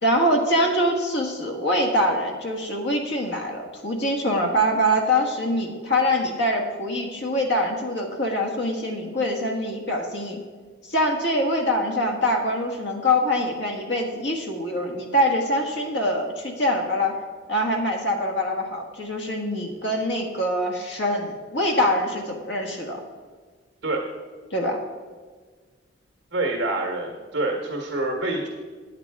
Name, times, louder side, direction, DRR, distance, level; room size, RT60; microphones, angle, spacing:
voice 1, 0.0-10.4 10.8-17.1 17.5-23.0 24.5-24.8, equal, 60° left, 2 dB, 1.6 m, -24 dB
voice 2, 26.3-28.5, right 2 dB, 60° right, 1 dB, 1.5 m, -26 dB
9.0 x 8.6 x 4.8 m, 1.5 s
head